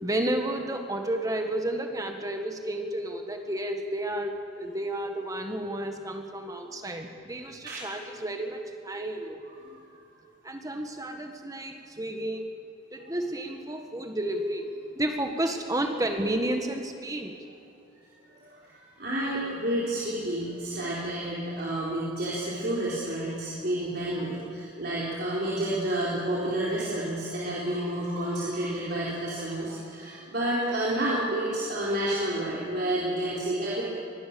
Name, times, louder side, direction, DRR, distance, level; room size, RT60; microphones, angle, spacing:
voice 1, 0.0-9.4 10.4-12.5 12.9-17.4, right 1 dB, 20° right, 4 dB, 1.5 m, -31 dB
voice 2, 7.7-8.0 9.6-10.0 18.1-33.8, right 1 dB, 55° right, -7 dB, 4.4 m, -30 dB
24.0 x 20.0 x 7.0 m, 2.7 s
head